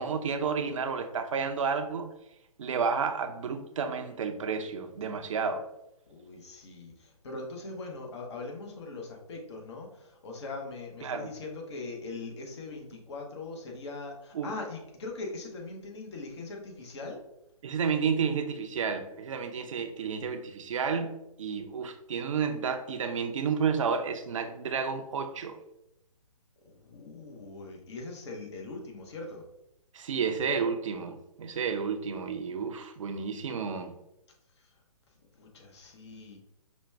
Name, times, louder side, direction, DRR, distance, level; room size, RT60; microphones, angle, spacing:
voice 1, 0.0-2.1 2.6-5.7 11.0-11.3 14.3-14.5 17.6-25.6 29.9-33.9, right 6 dB, 55° right, 0.6 m, -31 dB
voice 2, 6.1-17.2 26.6-29.4 34.6-34.7 35.4-36.4, left 3 dB, 45° left, 1.0 m, -41 dB
5.0 x 2.2 x 3.3 m
figure-of-eight pair, 135°, 19 cm